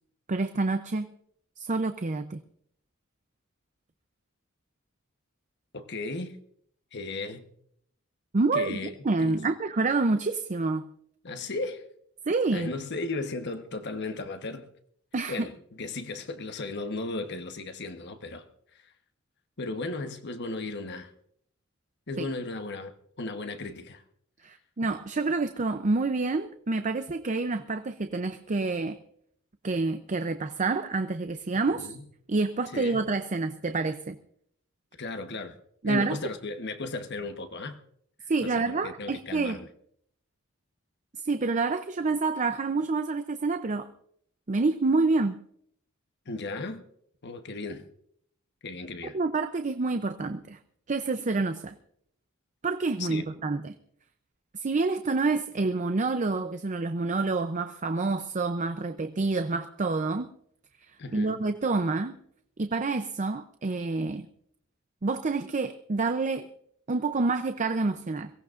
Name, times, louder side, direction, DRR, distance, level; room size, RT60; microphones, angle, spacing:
voice 1, 0.3-1.1 1.6-2.4 8.3-8.8 9.0-10.9 12.3-12.7 15.1-15.5 22.2-22.3 24.4-29.0 29.6-31.9 32.3-34.2 35.8-36.2 38.3-39.6 41.1-43.9 44.5-45.4 49.1-50.6 50.9-51.7 52.6-53.7 54.5-60.3 61.1-62.2 62.6-64.3 65.0-66.5 66.9-68.3, right 3 dB, 35° right, 0.6 m, -28 dB
voice 2, 5.7-6.4 6.9-7.5 8.5-8.9 9.2-9.4 11.2-11.9 12.5-14.7 15.3-18.9 19.6-21.1 22.1-24.0 31.7-32.0 32.7-33.0 35.0-35.6 35.8-37.8 38.4-39.7 46.3-46.8 47.2-47.9 48.6-49.2 53.0-53.3 61.0-61.4, left 3 dB, 55° left, 1.1 m, -36 dB
22.5 x 17.0 x 2.5 m
head